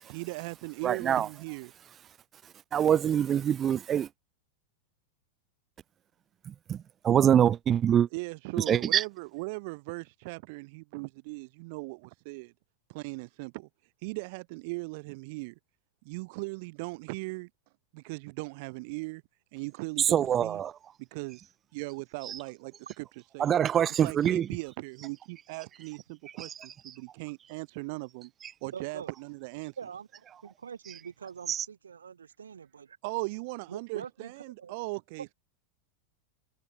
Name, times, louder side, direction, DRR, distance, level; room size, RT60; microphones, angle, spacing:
voice 1, 0.0-1.7 8.1-12.5 12.9-13.7 14.0-15.5 16.0-17.5 17.9-19.2 19.5-20.6 21.0-23.0 23.3-23.5 23.9-28.3 28.6-29.8 33.0-35.3, right 27 dB, 45° right, 6.2 m, -38 dB
voice 2, 0.8-1.3 2.7-4.1 6.7-6.8 7.0-8.1 8.7-9.0 20.1-20.7 23.4-24.4, right 9 dB, 25° right, 0.5 m, -24 dB
voice 3, 28.7-29.1 29.8-33.0 33.7-34.3 34.6-34.7, right 7 dB, 70° right, 2.8 m, -44 dB
figure-of-eight pair, 90°, 0 cm